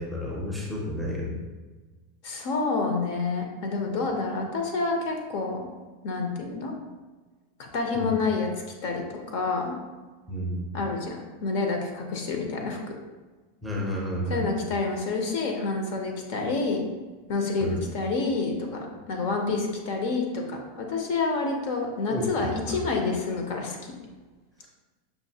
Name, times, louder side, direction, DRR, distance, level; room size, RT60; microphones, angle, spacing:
voice 1, 0.0-1.4 7.9-8.1 10.3-10.7 13.6-14.5 17.6-17.8 22.1-22.8, equal, ahead, -5 dB, 0.6 m, -31 dB
voice 2, 2.2-5.7 6.0-6.7 7.6-8.5 8.8-9.7 10.7-12.8 14.3-16.8 17.3-23.9, left 3 dB, 45° left, 2 dB, 0.6 m, -28 dB
5.6 x 2.5 x 2.8 m, 1.3 s
supercardioid pair, 170°, 0 cm